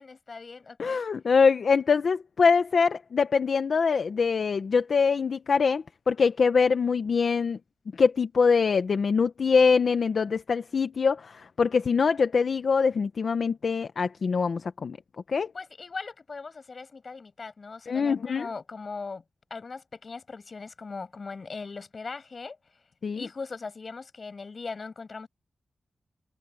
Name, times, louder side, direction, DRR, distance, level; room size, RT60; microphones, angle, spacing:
voice 1, 0.0-1.1 15.5-19.2 19.5-22.6 23.1-25.3, left 4 dB, 40° left, 6.0 m, -39 dB
voice 2, 0.8-7.6 8.0-15.0 15.3-15.5 17.9-18.5 23.0-23.2, left 5 dB, 60° left, 0.9 m, -24 dB
wide cardioid pair, 170°, 0 cm